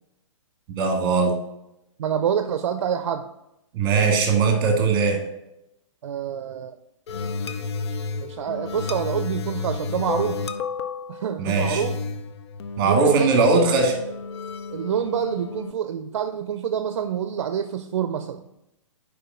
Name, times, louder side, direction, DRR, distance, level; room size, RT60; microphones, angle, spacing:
voice 1, 0.7-1.3 3.7-5.2 11.4-11.8 12.8-14.0, right 4 dB, 20° right, 3 dB, 1.6 m, -20 dB
voice 2, 2.0-3.3 6.0-6.7 8.2-10.4 11.1-12.0 12.8-13.3 14.7-18.4, right 8 dB, 60° right, 10 dB, 0.5 m, -27 dB
sound 1, 7.1-15.7, left 4 dB, 55° left, 0.6 m, -32 dB
5.0 x 5.0 x 6.0 m, 0.86 s
hypercardioid pair, 165°, 17 cm